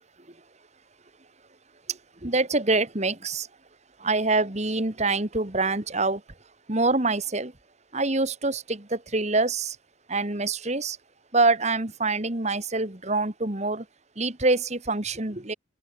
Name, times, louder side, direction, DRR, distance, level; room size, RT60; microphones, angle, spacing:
voice 1, 2.2-3.5 4.0-6.2 6.7-7.5 7.9-9.8 10.1-11.0 11.3-13.8 14.2-15.5, right 3 dB, 35° right, 2.0 m, -25 dB
open air
head